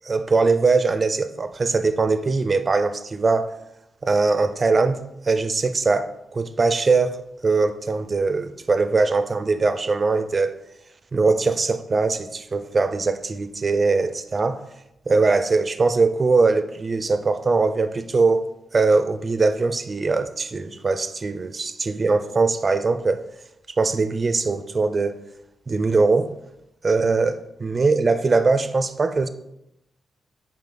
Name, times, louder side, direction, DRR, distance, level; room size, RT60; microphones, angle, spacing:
voice 1, 0.0-3.5 4.0-7.2 7.4-10.5 11.1-14.6 15.1-18.5 18.7-23.2 23.8-25.2 25.7-26.3 26.8-29.3, right 3 dB, 30° right, 0.4 m, -21 dB
9.3 x 4.7 x 3.8 m
wide cardioid pair, 150°, 0 cm